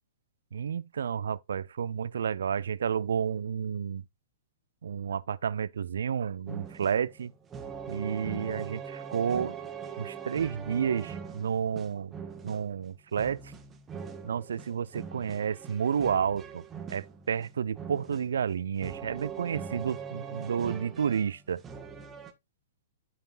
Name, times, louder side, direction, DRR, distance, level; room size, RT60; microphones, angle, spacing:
voice 1, 0.5-4.0 4.8-7.3 7.9-9.5 10.0-12.1 12.4-13.5 14.2-16.6 16.9-21.6, right 7 dB, 65° right, 0.5 m, -31 dB
sound 1, 6.5-22.3, right 6 dB, 15° right, 1.6 m, -42 dB
13.5 x 4.9 x 2.5 m
figure-of-eight pair, 110°, 0 cm